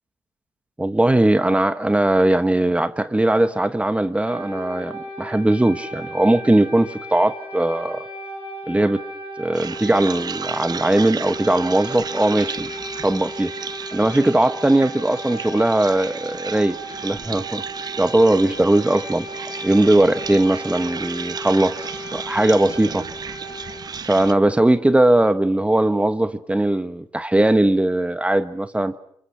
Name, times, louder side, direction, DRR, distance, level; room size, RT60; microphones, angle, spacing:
voice 1, 0.8-8.1 8.7-9.0 9.4-12.7 13.0-13.5 13.9-17.6 18.0-19.3 19.6-21.8 22.1-23.0 24.1-29.0, right 1 dB, 15° right, 1.3 m, -19 dB
sound 1, 4.3-23.8, equal, 85° left, 5.6 m, -35 dB
sound 2, 9.5-24.3, right 6 dB, 45° right, 0.9 m, -34 dB
28.0 x 24.5 x 5.9 m
supercardioid pair, 55°, 9 cm